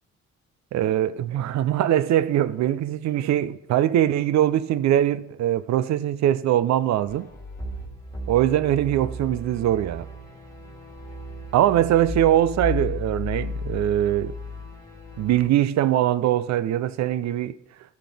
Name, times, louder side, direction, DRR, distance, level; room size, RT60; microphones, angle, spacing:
voice 1, 0.7-7.3 8.3-10.1 11.5-14.3 15.2-17.5, right 12 dB, 65° right, 0.5 m, -22 dB
sound 1, 7.1-15.5, left 2 dB, 10° left, 1.8 m, -35 dB
12.5 x 5.8 x 3.5 m
cardioid pair, 90°, 30 cm